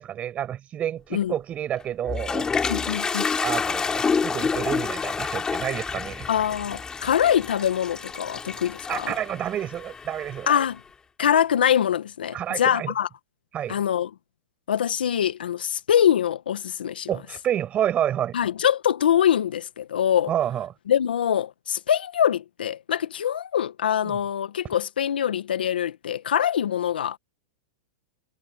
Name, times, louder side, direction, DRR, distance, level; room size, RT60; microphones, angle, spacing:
voice 1, 0.0-2.5 3.4-6.3 8.9-10.5 12.3-12.9 13.5-13.8 17.1-18.4 20.3-20.7 24.0-24.2, right 10 dB, 25° right, 7.1 m, -29 dB
Toilet flush, 1.8-10.7, left 5 dB, 15° left, 3.6 m, -29 dB
voice 2, 2.6-3.3 6.3-9.1 10.5-10.8 11.2-13.1 13.7-14.1 14.7-17.1 18.3-20.3 20.9-27.2, left 9 dB, 90° left, 1.5 m, -24 dB
hypercardioid pair, 135°, 5 cm